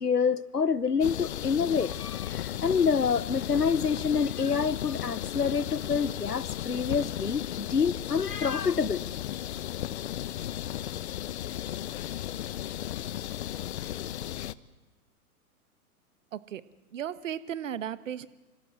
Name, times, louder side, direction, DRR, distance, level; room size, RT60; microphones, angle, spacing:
voice 1, 0.0-9.0, left 6 dB, 85° left, 1.0 m, -27 dB
sound 1, 1.0-14.5, left 12 dB, 45° left, 0.9 m, -35 dB
voice 2, 16.3-16.6 16.9-18.3, right 9 dB, 55° right, 1.5 m, -35 dB
26.5 x 26.0 x 8.0 m
figure-of-eight pair, 110°, 45 cm